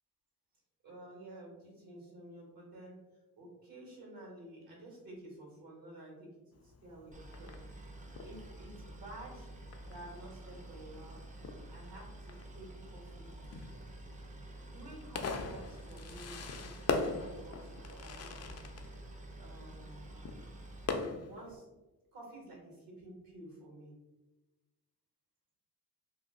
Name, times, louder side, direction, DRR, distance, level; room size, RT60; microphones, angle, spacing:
voice 1, 0.8-3.0 3.4-7.9 8.2-9.6 9.9-13.4 14.0-14.1 14.5-19.0 19.4-20.1 21.2-21.7 22.1-24.0, right 1 dB, 65° right, -2 dB, 1.4 m, -52 dB
Fireworks, 6.5-21.6, left 4 dB, 45° left, 0.4 m, -42 dB
Boat Water vehicle, 7.1-20.9, right 2 dB, 20° right, 0.4 m, -49 dB
2.7 x 2.2 x 3.6 m, 1.1 s
cardioid pair, 80°, 38 cm